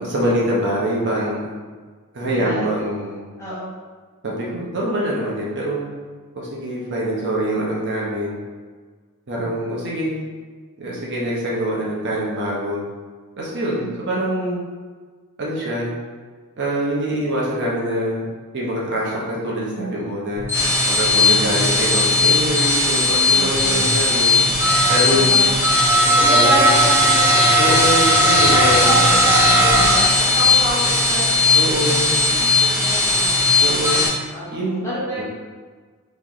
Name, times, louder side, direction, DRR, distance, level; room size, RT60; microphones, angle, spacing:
voice 1, 0.0-1.4 2.1-3.3 4.2-5.9 6.3-8.4 9.3-10.2 10.8-12.8 13.4-14.6 15.4-15.9 16.6-18.3 18.5-20.5 20.9-24.4 24.9-25.4 26.2-26.7 27.6-29.1 31.5-32.2 33.6-34.1 34.5-34.8 35.2-35.3, equal, 55° right, -5 dB, 0.9 m, -24 dB
voice 2, 2.2-2.7 3.4-3.7 13.7-13.9 21.2-21.5 23.3-23.8 25.1-25.5 26.0-27.4 28.5-35.2, equal, 15° left, -9 dB, 1.2 m, -28 dB
sound 1, 20.4-34.1, left 2 dB, 10° right, 1.0 m, -16 dB
3.2 x 3.1 x 3.8 m, 1.5 s
head